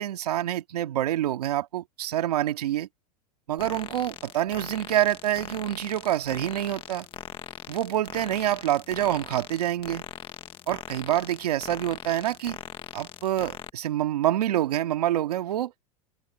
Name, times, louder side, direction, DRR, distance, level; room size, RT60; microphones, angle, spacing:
voice 1, 0.0-2.9 3.5-7.1 7.7-10.0 10.7-12.6 12.9-15.7, right 13 dB, 85° right, 2.1 m, -27 dB
sound 1, 3.6-13.7, left 9 dB, 25° left, 1.5 m, -41 dB
open air
supercardioid pair, 120°, 20 cm